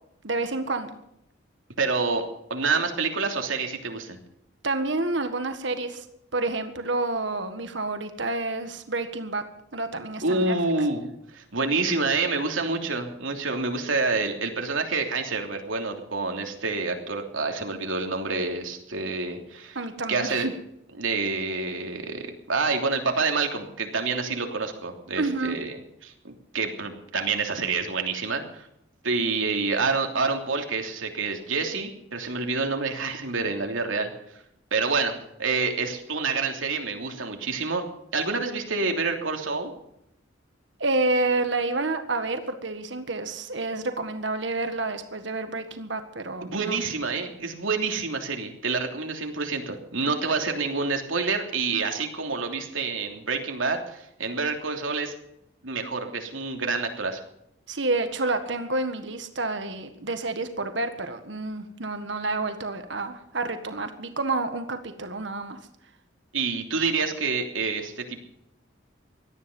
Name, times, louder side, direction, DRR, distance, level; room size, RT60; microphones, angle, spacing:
voice 1, 0.2-0.9 4.6-6.0 6.3-9.4 9.7-10.5 19.7-20.5 25.2-25.6 40.8-46.8 57.7-65.6, right 2 dB, 65° right, 8 dB, 1.7 m, -29 dB
voice 2, 1.8-2.2 2.5-4.2 10.2-19.8 20.1-20.5 21.0-25.8 26.0-28.7 29.0-34.1 34.7-35.1 35.4-37.8 38.1-39.7 46.4-55.1 55.6-57.2 66.3-68.2, right 4 dB, 85° right, 3 dB, 3.1 m, -27 dB
18.0 x 13.5 x 5.5 m, 0.78 s
head